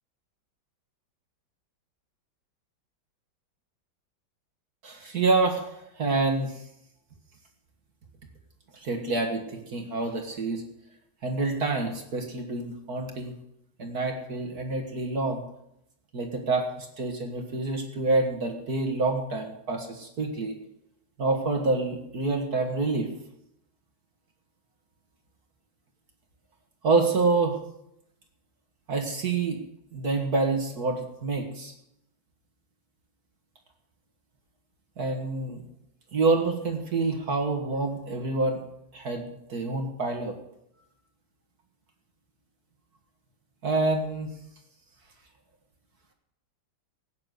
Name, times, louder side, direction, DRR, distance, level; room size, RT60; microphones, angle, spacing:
voice 1, 4.8-5.7 6.0-6.5 8.8-10.6 11.2-13.3 13.8-15.4 16.1-20.6 21.2-23.1 26.8-27.6 28.9-29.6 29.9-31.7 35.0-35.6 36.1-38.6 38.9-39.2 39.5-40.4 43.6-44.3, right 3 dB, 50° right, 4 dB, 2.1 m, -27 dB
17.5 x 9.5 x 6.8 m, 0.79 s
omnidirectional pair, 2.1 m